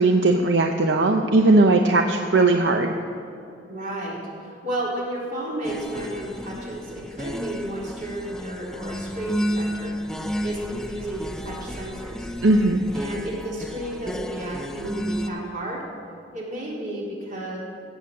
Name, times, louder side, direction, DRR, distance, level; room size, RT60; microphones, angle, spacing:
voice 1, 0.0-2.9 12.4-12.8, right 2 dB, 75° right, 4 dB, 0.7 m, -18 dB
voice 2, 3.6-12.3 12.9-15.8 16.3-17.6, right 1 dB, 45° right, -5 dB, 3.8 m, -32 dB
sound 1, 5.6-15.3, equal, 5° left, 0.5 m, -32 dB
16.0 x 7.2 x 7.6 m, 2.7 s
head